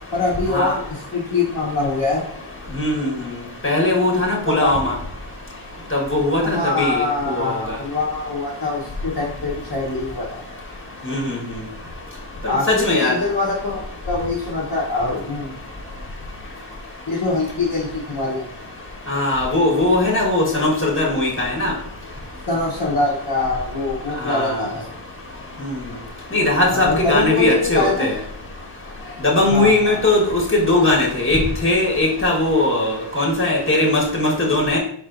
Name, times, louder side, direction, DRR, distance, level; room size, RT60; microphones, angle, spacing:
voice 1, 0.1-2.2 4.5-4.7 6.4-10.4 12.5-15.5 17.1-18.5 22.5-24.9 26.7-28.1 29.5-30.0, left 3 dB, 45° left, -6 dB, 1.1 m, -23 dB
voice 2, 2.8-3.2 3.6-4.9 5.9-7.6 11.1-11.4 12.4-13.1 19.1-21.7 24.2-24.5 25.6-25.7 26.3-28.2 29.2-34.8, left 2 dB, 25° left, -2 dB, 1.5 m, -19 dB
4.6 x 4.3 x 2.6 m, 0.62 s
wide cardioid pair, 55°, 50 cm